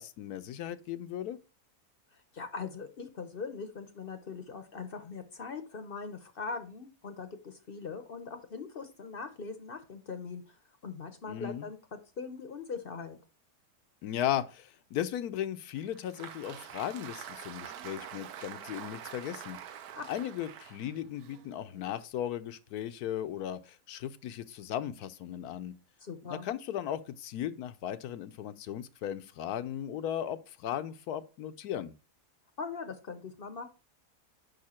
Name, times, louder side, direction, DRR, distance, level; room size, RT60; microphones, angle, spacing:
voice 1, 0.0-1.4 11.3-11.7 14.0-19.6 20.1-25.7 26.4-31.9, left 11 dB, 80° left, 1.1 m, -36 dB
voice 2, 2.1-10.6 10.8-11.8 12.2-13.2 19.9-20.1 26.0-26.5 32.6-33.7, left 5 dB, 45° left, 0.8 m, -41 dB
Applause, 15.8-22.1, right 9 dB, 80° right, 1.2 m, -46 dB
6.6 x 5.6 x 4.3 m
omnidirectional pair, 1.6 m